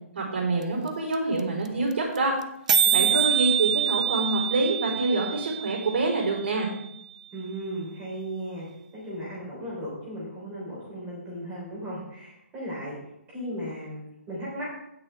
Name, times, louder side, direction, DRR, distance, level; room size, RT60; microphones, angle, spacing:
voice 1, 0.1-2.3 2.9-6.7, right 2 dB, 55° right, -1 dB, 4.2 m, -26 dB
sound 1, 0.6-0.7 0.9-1.0 1.1-1.4 1.6-1.7 1.9-2.2 2.4-2.5 2.7-6.7, right 8 dB, 30° right, 0.4 m, -25 dB
voice 2, 2.9-3.2 7.3-8.7 8.9-13.0 13.3-14.6, equal, 10° right, -6 dB, 3.7 m, -36 dB
16.0 x 6.4 x 3.5 m, 0.80 s
hypercardioid pair, 180°, 8 cm